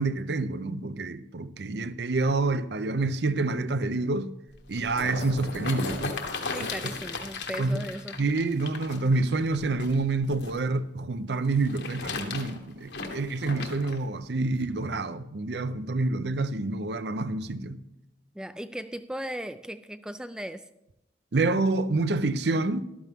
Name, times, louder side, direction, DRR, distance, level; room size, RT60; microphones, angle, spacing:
voice 1, 0.0-4.3 4.7-6.2 6.6-6.7 7.6-7.8 8.2-17.8 21.3-22.9, right 3 dB, 65° right, 0.6 m, -27 dB
sound 1, 4.5-10.6 11.5-14.0 14.6-14.7, left 3 dB, 70° left, 1.4 m, -36 dB
voice 2, 6.5-8.2 18.3-20.6, equal, 5° right, 0.3 m, -37 dB
14.0 x 12.0 x 3.5 m
head